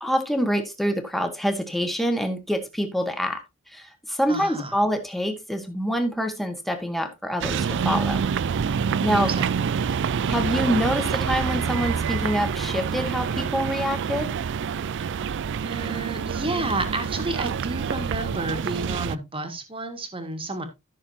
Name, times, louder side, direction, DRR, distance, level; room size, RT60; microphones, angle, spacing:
voice 1, 0.0-3.4 3.7-8.3 9.0-9.3 10.3-14.3, equal, ahead, 5 dB, 1.6 m, -26 dB
voice 2, 4.3-4.7 9.1-9.5 15.6-20.6, right 2 dB, 25° right, 6 dB, 1.8 m, -31 dB
sound 1, 7.4-19.2, right 6 dB, 55° right, 0.4 m, -27 dB
14.0 x 6.4 x 2.8 m, 0.22 s
head